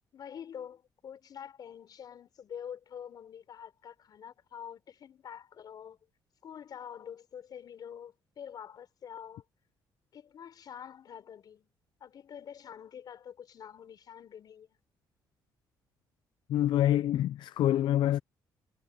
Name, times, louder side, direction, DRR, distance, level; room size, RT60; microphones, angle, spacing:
voice 1, 0.1-6.1 6.4-9.5 10.1-11.7 12.0-14.8, left 8 dB, 55° left, 6.3 m, -46 dB
voice 2, 16.5-18.2, left 12 dB, 70° left, 0.5 m, -26 dB
cardioid pair, 115°, 8 cm